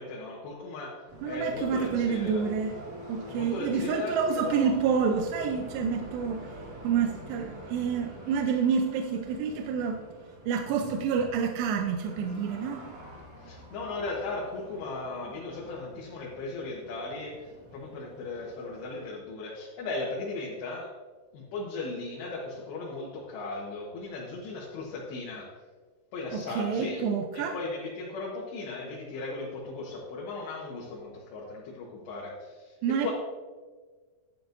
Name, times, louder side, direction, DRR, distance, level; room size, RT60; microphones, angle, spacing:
voice 1, 0.0-2.4 3.3-4.7 13.4-20.9 21.3-25.5 26.1-27.0 27.3-33.1, left 3 dB, 75° left, -4 dB, 3.3 m, -37 dB
sound 1, 1.1-19.1, right 1 dB, 55° right, 2.7 m, -47 dB
voice 2, 1.2-2.7 3.1-6.5 6.8-10.0 10.4-12.9 26.3-27.6 32.8-33.1, right 6 dB, 80° right, 4 dB, 2.7 m, -28 dB
11.0 x 10.5 x 2.6 m, 1.4 s
omnidirectional pair, 5.1 m